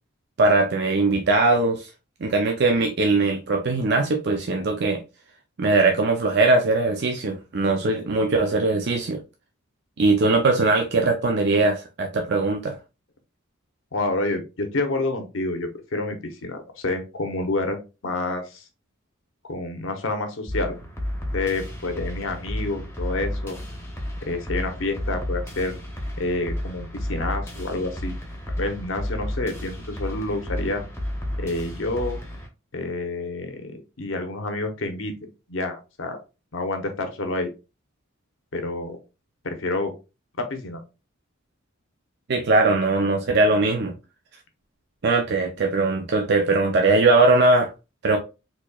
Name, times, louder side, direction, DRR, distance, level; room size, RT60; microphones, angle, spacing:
voice 1, 0.4-1.9 2.2-5.0 5.6-9.2 10.0-12.8 42.3-43.9 45.0-47.7 48.0-48.2, right 3 dB, 55° right, 0.5 m, -20 dB
voice 2, 13.9-17.8 18.0-18.6 19.5-20.8 21.3-23.6 24.2-25.7 26.2-28.1 28.6-30.8 31.4-32.2 32.7-35.1 35.5-36.2 36.5-37.5 38.5-39.0 39.4-39.9 40.4-40.8, left 2 dB, 70° left, 0.9 m, -28 dB
sound 1, 20.5-32.5, left 1 dB, 10° left, 0.8 m, -32 dB
4.2 x 2.9 x 2.3 m
head